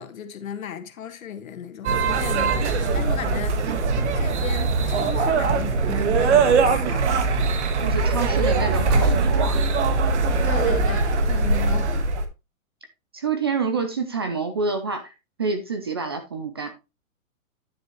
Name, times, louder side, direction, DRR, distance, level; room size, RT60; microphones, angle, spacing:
voice 1, 0.0-3.8 4.1-7.1 10.4-11.9, left 8 dB, 75° left, 1.7 m, -35 dB
sound 1, 1.8-12.2, right 4 dB, 55° right, 1.5 m, -21 dB
voice 2, 7.8-9.6 13.1-15.1 15.4-16.7, right 4 dB, 20° right, 0.4 m, -27 dB
10.0 x 6.4 x 3.0 m
hypercardioid pair, 165°, 41 cm